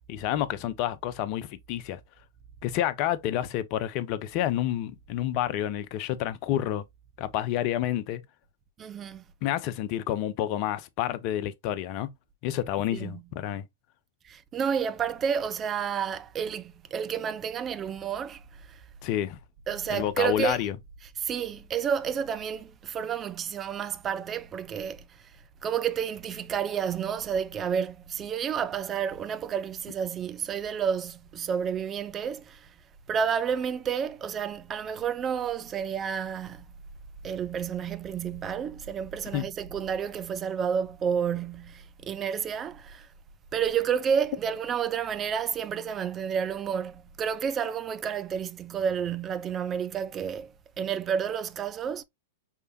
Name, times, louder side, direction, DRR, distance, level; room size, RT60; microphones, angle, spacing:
voice 1, 0.1-2.0 2.6-6.8 7.2-8.2 9.4-12.1 12.4-13.6 19.0-19.4 19.9-20.8 39.3-39.5, left 12 dB, 40° left, 0.6 m, -29 dB
voice 2, 8.8-9.2 12.9-13.3 14.2-18.4 19.7-20.6 21.0-25.0 25.6-32.7 33.1-36.7 37.2-43.1 43.5-52.0, right 7 dB, 25° right, 0.6 m, -30 dB
5.6 x 3.3 x 2.3 m
figure-of-eight pair, 105°, 0 cm